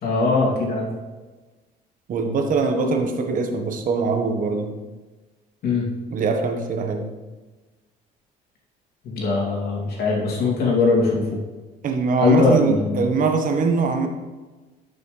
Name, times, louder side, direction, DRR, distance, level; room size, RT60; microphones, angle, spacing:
voice 1, 0.0-0.9 5.6-5.9 9.0-11.4 12.2-13.1, left 3 dB, 65° left, -3 dB, 2.9 m, -21 dB
voice 2, 2.1-4.7 6.1-7.1 11.8-14.1, right 4 dB, 50° right, 4 dB, 1.4 m, -22 dB
12.0 x 6.2 x 3.4 m, 1.2 s
cardioid pair, 110°, 17 cm